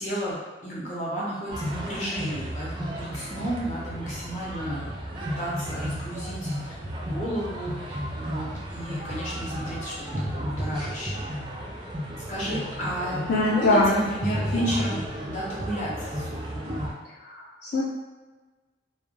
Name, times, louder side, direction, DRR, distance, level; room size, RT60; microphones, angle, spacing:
voice 1, 0.0-4.9 5.2-6.7 7.0-11.2 12.3-16.8, right 1 dB, 40° left, -6 dB, 0.7 m, -33 dB
sound 1, 1.5-16.9, equal, 25° right, 0.3 m, -33 dB
voice 2, 13.3-13.9 14.5-14.7 17.2-17.8, left 2 dB, 65° left, -6 dB, 0.4 m, -22 dB
2.4 x 2.1 x 3.0 m, 1.3 s
head